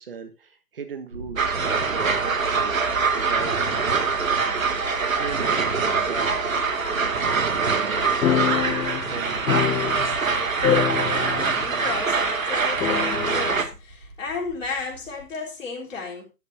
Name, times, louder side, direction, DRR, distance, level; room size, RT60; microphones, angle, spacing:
voice 1, 0.0-4.7 5.1-6.6 7.0-10.1, right 5 dB, 35° right, 1.4 m, -39 dB
Thunder, 1.1-15.3, right 1 dB, 85° right, 7.3 m, -41 dB
sound 1, 1.4-13.6, right 5 dB, 55° right, 2.1 m, -24 dB
sound 2, 8.2-10.3 10.6-11.6 11.9-12.0 12.8-13.6, left 10 dB, 90° left, 0.5 m, -25 dB
voice 2, 10.7-16.3, left 4 dB, 50° left, 3.8 m, -33 dB
12.5 x 11.0 x 2.7 m
figure-of-eight pair, 160°, 49 cm